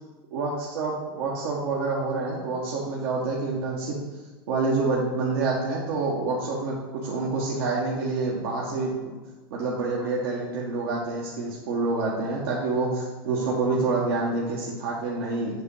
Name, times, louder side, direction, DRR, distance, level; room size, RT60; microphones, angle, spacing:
voice 1, 0.3-4.0 4.5-8.9 9.5-15.6, right 3 dB, 75° right, -4 dB, 1.2 m, -27 dB
7.7 x 3.0 x 5.4 m, 1.2 s
supercardioid pair, 120°, 13 cm